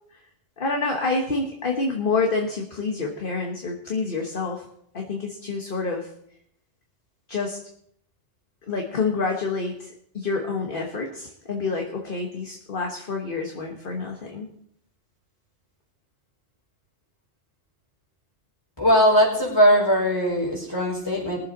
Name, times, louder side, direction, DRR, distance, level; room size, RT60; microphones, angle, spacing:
voice 1, 0.6-4.6 4.9-6.1 7.3-7.6 8.7-9.9 10.1-14.5, left 4 dB, 50° left, 1 dB, 1.5 m, -27 dB
voice 2, 18.8-21.4, equal, 20° left, -4 dB, 5.0 m, -20 dB
22.0 x 7.6 x 4.0 m, 0.68 s
omnidirectional pair, 1.2 m